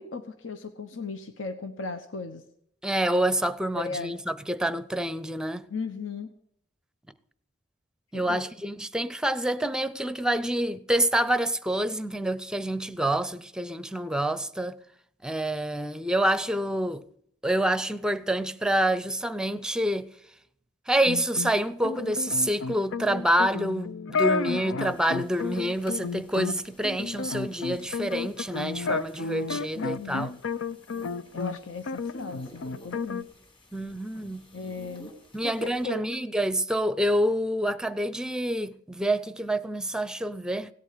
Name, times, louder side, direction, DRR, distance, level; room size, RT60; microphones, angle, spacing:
voice 1, 0.0-2.4 3.8-4.1 5.7-6.3 8.1-8.4 29.7-30.3 31.3-33.3 34.5-35.1 35.4-36.0, left 4 dB, 70° left, 1.1 m, -36 dB
voice 2, 2.8-5.7 8.1-14.8 15.2-17.0 17.4-20.1 20.9-30.3 33.7-34.4 35.3-40.7, right 1 dB, 5° right, 0.6 m, -27 dB
sound 1, 21.1-31.6 31.9-33.2, left 4 dB, 90° left, 0.6 m, -32 dB
sound 2, 24.8-35.8, equal, 30° left, 4.5 m, -53 dB
17.5 x 8.1 x 8.3 m
head